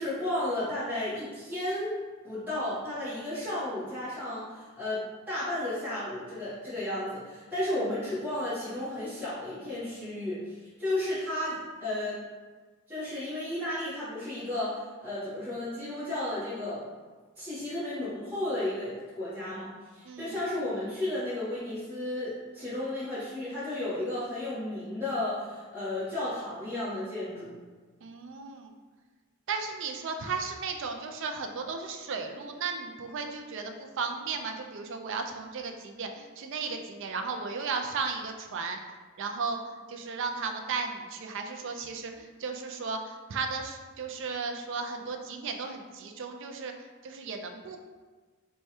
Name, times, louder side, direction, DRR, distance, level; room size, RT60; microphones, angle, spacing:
voice 1, 0.0-2.0 2.2-12.2 12.9-16.8 17.4-27.5, left 1 dB, 10° right, -15 dB, 1.0 m, -33 dB
voice 2, 28.0-28.7 29.5-38.8 39.2-47.8, right 4 dB, 55° right, 4 dB, 0.4 m, -35 dB
3.2 x 2.2 x 4.3 m, 1.4 s
head